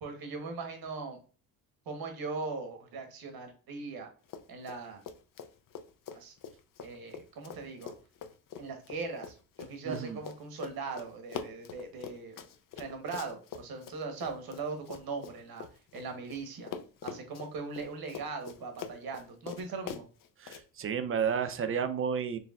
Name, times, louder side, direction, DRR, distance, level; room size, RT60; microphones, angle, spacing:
voice 1, 0.0-1.2 1.9-4.1 4.5-5.0 6.1-6.3 6.8-7.9 8.6-12.4 12.8-15.7 15.9-16.7 17.0-20.0, right 4 dB, 70° right, 5 dB, 1.2 m, -39 dB
Run, 4.2-4.8 5.0-16.4 16.7-20.6, left 7 dB, 60° left, 0.5 m, -44 dB
voice 2, 9.9-10.2 20.4-22.4, right 7 dB, 35° right, 9 dB, 0.5 m, -31 dB
4.6 x 3.2 x 2.4 m, 0.37 s
cardioid pair, 85°, 38 cm